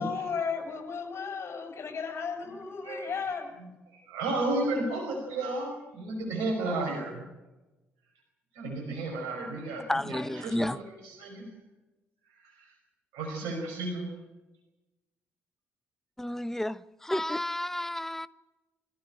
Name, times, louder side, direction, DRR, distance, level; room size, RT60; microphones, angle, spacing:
voice 1, 0.0-3.5, left 5 dB, 50° left, 7.2 m, -34 dB
voice 2, 2.8-7.3 8.5-11.5 12.3-12.7 13.1-14.1, right 2 dB, 70° right, 5.4 m, -33 dB
voice 3, 9.9-10.8 16.2-18.3, left 1 dB, 5° left, 0.9 m, -31 dB
25.0 x 14.5 x 9.0 m
hypercardioid pair, 45°, 6 cm